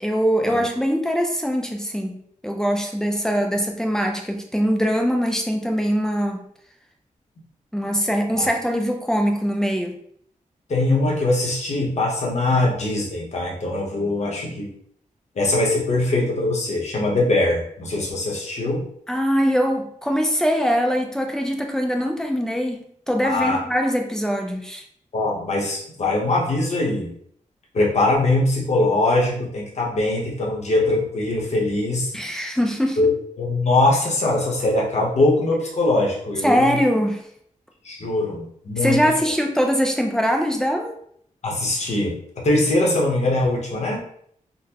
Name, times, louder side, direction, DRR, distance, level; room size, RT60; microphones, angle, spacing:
voice 1, 0.0-6.4 7.7-10.0 19.1-24.8 32.1-33.0 36.4-37.2 38.8-40.9, equal, 5° left, 3 dB, 0.4 m, -22 dB
voice 2, 10.7-14.7 15.3-18.8 23.2-23.6 25.1-27.2 27.7-32.1 33.0-33.1 33.4-36.8 37.8-39.0 41.4-42.1 42.4-44.0, left 2 dB, 55° left, -2 dB, 0.9 m, -22 dB
3.8 x 2.1 x 2.8 m, 0.66 s
wide cardioid pair, 145°, 14 cm